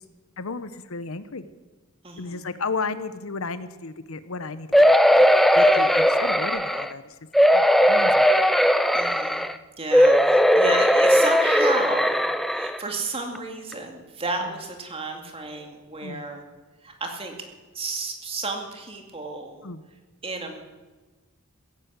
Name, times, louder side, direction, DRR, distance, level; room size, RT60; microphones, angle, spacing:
voice 1, 0.4-1.4 2.2-4.9 5.5-7.0 7.5-8.4 16.0-16.2 19.6-19.8, left 4 dB, 70° left, 13 dB, 0.9 m, -33 dB
voice 2, 2.0-2.5 5.6-6.0 8.9-9.5 9.8-12.2 12.5-16.4 16.8-17.3 17.7-19.7 20.2-20.6, right 3 dB, 25° right, 3 dB, 2.3 m, -32 dB
sound 1, 4.7-6.9 7.3-9.5 9.9-12.8 13.3-13.4 13.7-13.8, equal, ahead, 0.5 m, -18 dB
16.0 x 10.5 x 8.1 m, 1.3 s
head